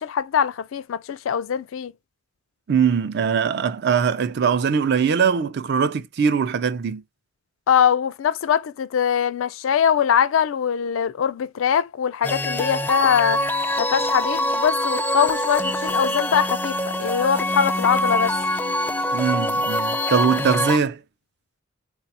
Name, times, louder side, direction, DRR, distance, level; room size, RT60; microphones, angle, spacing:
voice 1, 0.0-1.9 7.7-13.4 13.8-18.3, left 8 dB, 85° left, 0.4 m, -22 dB
voice 2, 2.7-7.0 19.1-21.0, right 6 dB, 60° right, 0.4 m, -21 dB
sound 1, 12.2-20.8, left 1 dB, 10° left, 0.4 m, -24 dB
4.0 x 2.3 x 2.7 m
head